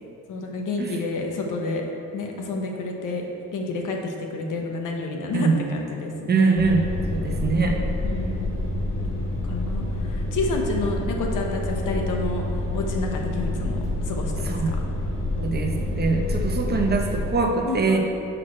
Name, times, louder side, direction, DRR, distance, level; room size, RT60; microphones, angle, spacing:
voice 1, 0.3-1.8 2.1-3.2 3.5-6.7 8.0-8.5 9.5-9.8 10.1-12.4 12.7-13.8 14.1-14.5 17.6-18.0, left 2 dB, 75° left, 1 dB, 1.1 m, -29 dB
voice 2, 6.3-7.8 14.4-14.8 15.4-18.0, right 4 dB, 30° right, 1 dB, 0.9 m, -23 dB
sound 1, 6.6-17.3, left 2 dB, 40° left, 1.7 m, -27 dB
6.6 x 6.2 x 4.4 m, 2.8 s
cardioid pair, 110°, 32 cm